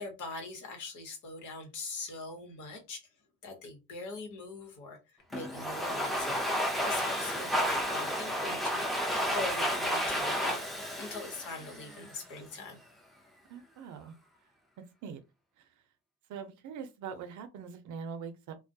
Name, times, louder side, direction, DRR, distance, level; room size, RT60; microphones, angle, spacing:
voice 1, 0.0-3.0 3.4-8.9 9.3-10.6 11.0-12.8, left 3 dB, 85° left, 1.0 m, -42 dB
Domestic sounds home sounds, 5.3-12.2, equal, ahead, 0.5 m, -32 dB
voice 2, 13.5-14.1 14.8-15.2 15.6-15.7 16.3-18.6, right 6 dB, 75° right, 0.6 m, -43 dB
2.2 x 2.1 x 2.6 m
cardioid pair, 90°, 30 cm